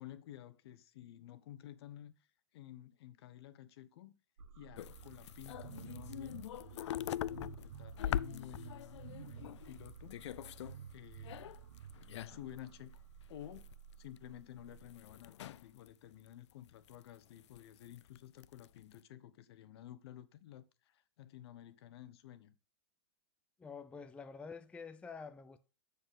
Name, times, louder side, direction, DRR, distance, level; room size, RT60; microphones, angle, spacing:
voice 1, 0.0-2.3 2.5-4.1 4.6-6.5 6.9-10.2 10.9-11.5 12.2-13.0 13.3-13.7 14.0-22.6, left 13 dB, 60° left, 1.0 m, -52 dB
sound 1, 4.4-15.3, right 9 dB, 75° right, 1.2 m, -53 dB
sound 2, 4.8-10.8 11.1-12.6 12.9-13.0 13.4-13.9 14.2-15.9 16.3-16.9 17.4-18.2 18.4-18.9, left 11 dB, 80° left, 0.4 m, -43 dB
voice 2, 23.6-25.6, left 5 dB, 10° left, 0.5 m, -48 dB
7.1 x 6.7 x 3.6 m
hypercardioid pair, 135°, 15 cm